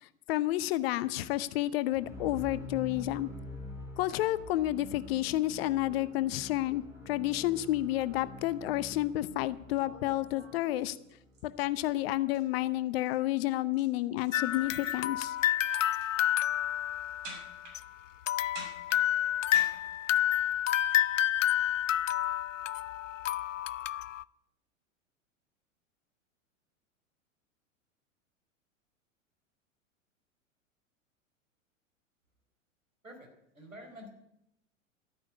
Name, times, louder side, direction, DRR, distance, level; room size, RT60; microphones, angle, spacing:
voice 1, 0.0-3.3 4.0-11.0 11.4-15.4, left 15 dB, 50° left, 16 dB, 0.9 m, -30 dB
sound 1, 1.9-11.9, left 2 dB, 5° right, 3.7 m, -46 dB
sound 2, 9.8-11.4 11.8-12.1 12.3-12.6 12.9-13.1 13.4-15.4 15.7-16.1 17.2-17.7 18.5-19.6, right 3 dB, 45° right, 7.7 m, -48 dB
sound 3, 14.3-17.8 18.3-24.2, left 12 dB, 70° left, 0.5 m, -29 dB
voice 2, 33.0-34.1, equal, 90° right, 3 dB, 4.5 m, -49 dB
13.5 x 9.4 x 9.7 m, 0.81 s
figure-of-eight pair, 95°, 40 cm